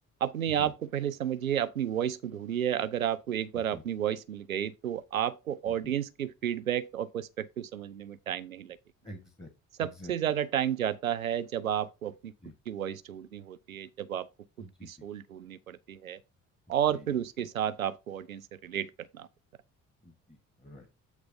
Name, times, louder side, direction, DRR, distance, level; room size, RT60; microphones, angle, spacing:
voice 1, 0.2-8.8 9.8-12.3 12.7-14.3 14.6-16.2 16.7-19.3, right 10 dB, 85° right, 0.5 m, -32 dB
voice 2, 5.6-5.9 9.0-9.5 9.8-10.1 12.4-12.5 14.6-15.1 16.9-17.5 20.0-20.9, left 1 dB, 15° left, 1.6 m, -48 dB
8.1 x 3.3 x 5.3 m
figure-of-eight pair, 50°, 40 cm